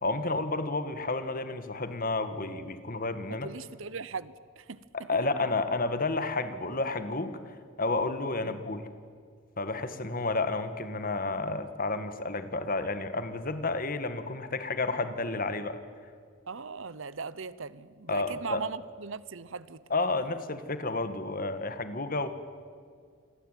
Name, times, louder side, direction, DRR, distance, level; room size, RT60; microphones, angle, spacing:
voice 1, 0.0-3.5 5.1-8.9 9.6-15.8 18.1-18.6 19.9-22.3, left 3 dB, 40° left, 1.7 m, -31 dB
voice 2, 3.3-4.8 8.4-8.5 16.5-19.8, right 5 dB, 60° right, 0.8 m, -39 dB
28.0 x 22.5 x 9.2 m
head